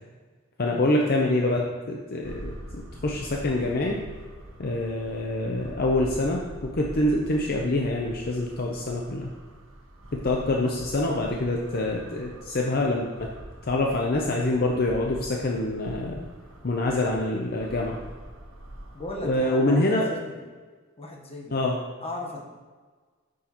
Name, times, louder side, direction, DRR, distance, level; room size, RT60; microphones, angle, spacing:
voice 1, 0.6-4.0 4.6-9.3 10.1-13.3 13.6-16.2 16.6-18.0 19.2-20.1 21.5-21.8, left 2 dB, 50° left, 0 dB, 0.6 m, -26 dB
sound 1, 2.2-19.4, right 1 dB, 75° right, 1.1 m, -44 dB
voice 2, 18.9-20.4 21.0-21.6 22.0-22.4, left 1 dB, 30° left, -1 dB, 1.1 m, -36 dB
8.7 x 6.3 x 3.0 m, 1.4 s
head